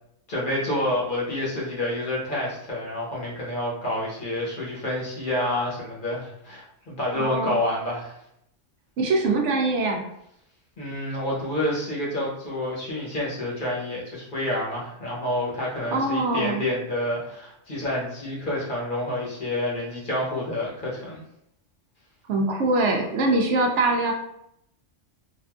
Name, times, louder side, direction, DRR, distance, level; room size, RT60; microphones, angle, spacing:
voice 1, 0.3-8.2 10.8-21.2, left 1 dB, 45° left, -5 dB, 1.0 m, -28 dB
voice 2, 7.1-7.6 9.0-10.0 15.9-16.6 22.3-24.1, right 2 dB, 70° right, 2 dB, 0.8 m, -23 dB
3.5 x 2.5 x 2.3 m, 0.76 s
omnidirectional pair, 1.3 m